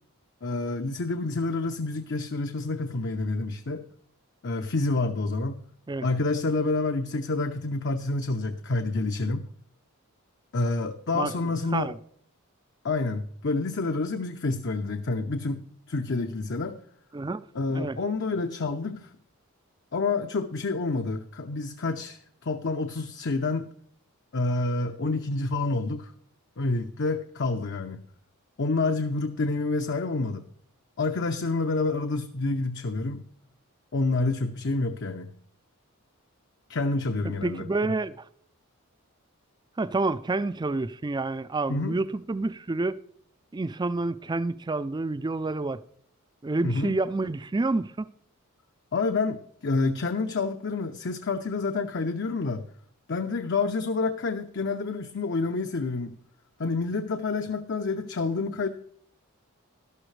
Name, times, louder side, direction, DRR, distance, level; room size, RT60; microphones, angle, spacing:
voice 1, 0.4-3.8 4.4-5.6 6.0-9.4 10.5-11.9 12.8-15.6 15.9-16.8 17.5-19.1 19.9-23.6 24.3-26.1 26.6-28.0 28.6-30.4 31.0-33.2 33.9-35.3 36.7-37.7 41.7-42.0 46.6-46.9 48.9-52.7 53.1-56.2 56.6-58.7, left 3 dB, 55° left, 0.7 m, -28 dB
voice 2, 17.1-17.4 17.7-18.0 37.4-38.2 39.8-43.0 43.5-45.8 46.4-48.1, right 3 dB, 20° right, 0.4 m, -28 dB
12.5 x 12.0 x 3.3 m
head